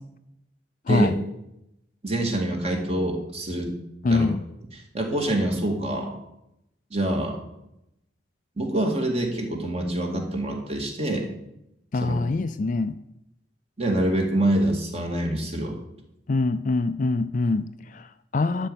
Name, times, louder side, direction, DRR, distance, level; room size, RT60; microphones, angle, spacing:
voice 1, 2.0-3.7 4.1-4.3 4.7-6.1 6.9-7.4 8.6-11.2 12.0-12.1 13.8-15.8, right 1 dB, 30° right, 2.1 m, -26 dB
voice 2, 4.0-4.4 11.9-13.0 16.3-18.7, left 3 dB, 40° left, 0.4 m, -24 dB
12.0 x 5.3 x 8.8 m
head